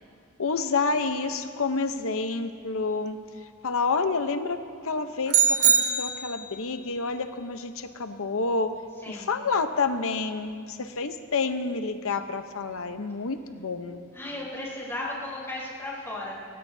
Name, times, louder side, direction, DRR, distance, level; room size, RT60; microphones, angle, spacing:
voice 1, 0.4-3.2 3.6-8.8 9.1-14.0, left 4 dB, 65° left, 8 dB, 0.9 m, -29 dB
sound 1, 5.3-6.6, right 6 dB, 90° right, 1.6 m, -22 dB
voice 2, 14.1-16.3, left 1 dB, 10° left, -6 dB, 3.8 m, -35 dB
26.0 x 16.5 x 2.7 m, 2.2 s
head